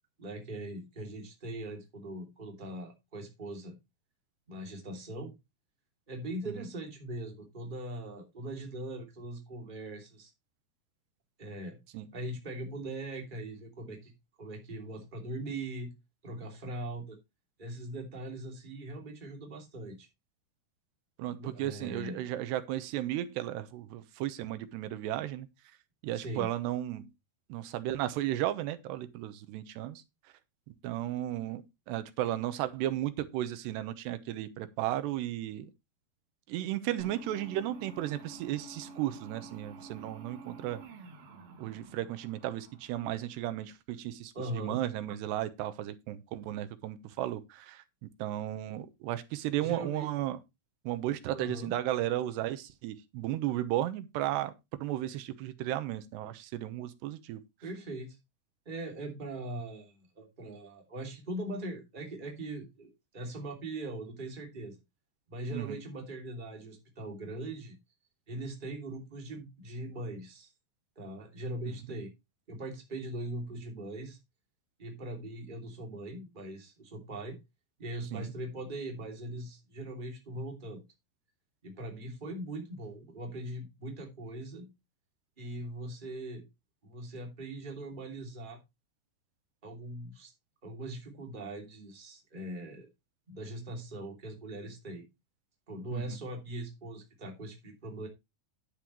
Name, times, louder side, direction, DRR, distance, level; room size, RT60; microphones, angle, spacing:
voice 1, 0.2-3.7 4.5-5.3 6.1-10.3 11.4-11.8 12.1-14.1 14.4-15.9 16.2-17.2 17.6-20.1 21.3-22.2 26.1-26.5 44.3-44.8 49.6-50.1 51.3-51.7 57.6-58.2 58.6-64.8 65.3-67.8 68.3-70.5 71.0-72.1 72.5-74.2 74.8-77.4 77.8-80.8 81.6-84.7 85.4-86.5 86.8-88.6 89.6-90.3 90.6-92.9 93.3-95.1 95.7-98.1, right 1 dB, 15° right, 2.3 m, -41 dB
voice 2, 21.2-25.5 26.0-27.1 27.5-30.0 30.8-35.7 36.5-40.8 41.6-47.8 48.2-50.4 50.9-54.5 54.8-57.4 65.5-65.8 78.1-78.3 95.9-96.2, right 13 dB, 90° right, 3.1 m, -34 dB
sound 1, 37.0-43.4, right 3 dB, 65° right, 3.4 m, -50 dB
10.0 x 9.9 x 3.1 m
omnidirectional pair, 4.8 m